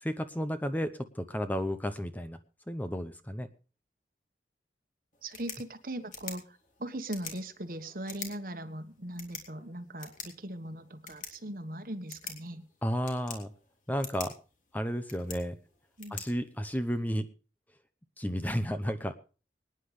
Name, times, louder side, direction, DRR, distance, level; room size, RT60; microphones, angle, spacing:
voice 1, 0.0-2.4 2.7-3.5 12.8-13.5 13.9-14.4 14.7-15.6 16.1-17.3 18.2-19.2, equal, 10° left, 9 dB, 0.8 m, -32 dB
sound 1, 5.1-17.1, left 6 dB, 45° left, 3.3 m, -47 dB
voice 2, 5.2-12.6 16.0-16.2, right 1 dB, 50° right, 9 dB, 1.4 m, -40 dB
24.5 x 9.9 x 3.3 m, 0.36 s
head